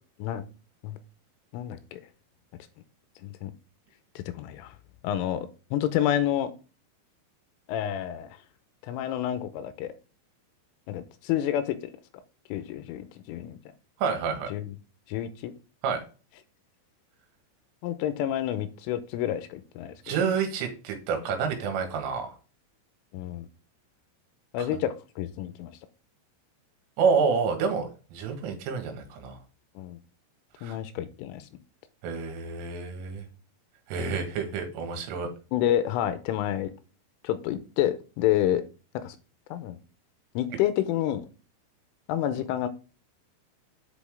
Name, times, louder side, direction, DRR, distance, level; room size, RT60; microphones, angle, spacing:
voice 1, 1.5-2.0 3.2-3.5 4.2-4.7 5.0-6.5 7.7-8.3 8.9-9.9 10.9-11.8 12.5-13.6 14.5-14.8 15.1-15.5 17.8-20.2 23.1-23.5 24.5-25.7 29.8-30.0 30.6-31.5 35.5-36.7 37.2-38.6 39.0-39.2 39.5-39.8 40.4-41.3 42.1-42.7, left 11 dB, 85° left, 12 dB, 3.2 m, -29 dB
voice 2, 14.0-14.5 15.8-16.0 20.1-22.3 24.6-24.7 27.0-29.4 30.6-30.8 32.0-33.2 33.9-35.3, right 5 dB, 80° right, 5 dB, 4.0 m, -28 dB
8.3 x 5.6 x 3.5 m, 0.34 s
omnidirectional pair, 5.8 m